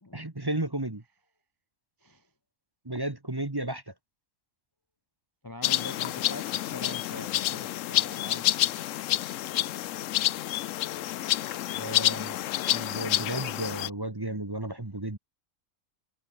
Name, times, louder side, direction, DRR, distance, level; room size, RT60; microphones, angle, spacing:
voice 1, 0.1-1.0 2.8-3.9 11.7-12.4 12.7-15.2, right 1 dB, 20° right, 1.3 m, -33 dB
voice 2, 2.0-2.3 5.4-8.8, left 2 dB, 20° left, 0.9 m, -43 dB
sound 1, 5.6-13.9, left 13 dB, 75° left, 1.0 m, -28 dB
omnidirectional pair, 1.4 m